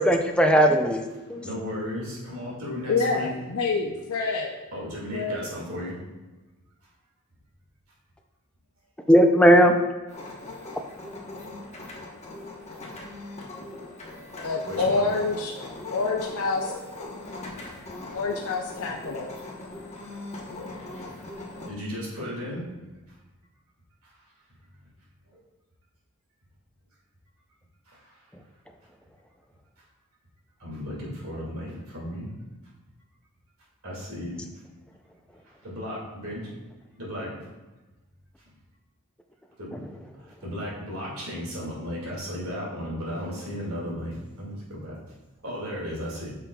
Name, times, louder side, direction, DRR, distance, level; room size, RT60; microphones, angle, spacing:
voice 1, 0.0-1.4 9.1-9.7, equal, 5° left, 4 dB, 0.4 m, -18 dB
voice 2, 1.4-3.3 4.7-6.0 12.7-12.8 14.7-15.2 21.7-22.6 24.0-24.2 25.3-25.4 27.9-28.2 30.6-32.3 33.8-34.5 35.4-36.5 37.0-37.5 39.6-39.8 40.1-45.0 45.4-46.3, equal, 75° right, -4 dB, 2.1 m, -35 dB
voice 3, 2.9-4.5 5.1-5.5 14.4-15.5 15.9-16.7 18.1-19.3, left 3 dB, 75° left, 0 dB, 0.5 m, -27 dB
sound 1, 10.1-21.7, left 2 dB, 30° left, 1.0 m, -40 dB
8.2 x 5.8 x 2.3 m, 1.1 s
head